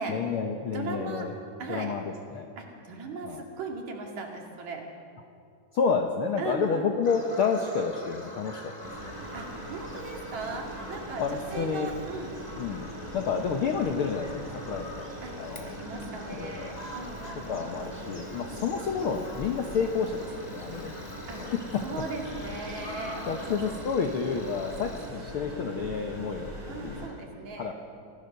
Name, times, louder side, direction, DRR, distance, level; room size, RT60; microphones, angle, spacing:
voice 1, 0.1-1.4 1.7-2.5 3.2-3.5 5.7-8.7 9.0-9.2 11.2-11.9 12.6-15.1 15.4-15.7 16.3-16.8 17.5-21.0 21.4-22.0 22.7-26.5 26.8-27.1 27.6-27.7, left 5 dB, 70° left, 5 dB, 1.3 m, -30 dB
voice 2, 0.7-1.3 1.6-1.9 2.6-4.9 6.4-7.1 9.3-12.3 15.2-18.0 18.4-18.6 20.7-20.9 21.3-21.4 21.8-23.8 26.7-27.7, right 3 dB, 60° right, 1 dB, 3.7 m, -38 dB
Bird vocalization bird call bird song, 7.0-25.1, left 1 dB, 15° left, 1.5 m, -45 dB
sound 1, 8.8-27.1, equal, 85° right, 9.1 m, -41 dB
25.5 x 16.0 x 6.7 m, 2.4 s
omnidirectional pair, 3.8 m